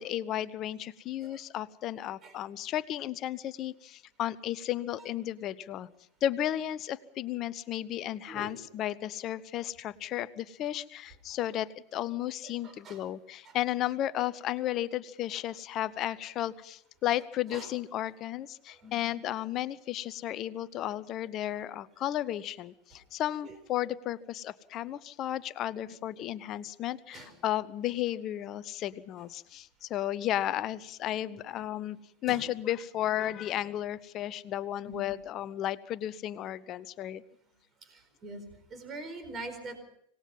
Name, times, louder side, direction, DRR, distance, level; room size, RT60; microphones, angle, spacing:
voice 1, 0.0-5.9 6.2-37.2, left 12 dB, 35° left, 18 dB, 0.9 m, -34 dB
voice 2, 12.4-13.0 13.4-13.6 15.3-15.4 17.5-17.7 18.7-19.1 23.4-23.6 25.9-26.0 27.1-27.3 32.3-32.4 34.9-35.0 37.8-38.4 38.7-39.8, right 2 dB, 25° right, 8 dB, 4.5 m, -44 dB
26.0 x 19.0 x 5.7 m, 0.71 s
figure-of-eight pair, 90°, 0 cm